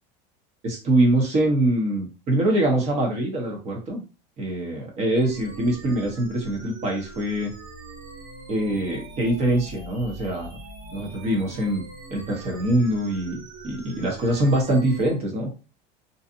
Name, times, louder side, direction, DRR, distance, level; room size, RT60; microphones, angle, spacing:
voice 1, 0.6-4.0 4.4-7.5 8.5-10.6 10.9-11.8 12.1-15.5, right 1 dB, 30° right, 1 dB, 0.9 m, -24 dB
sound 1, 5.1-15.1, right 2 dB, 75° right, 1.3 m, -42 dB
2.6 x 2.3 x 2.6 m, 0.32 s
supercardioid pair, 155°, 21 cm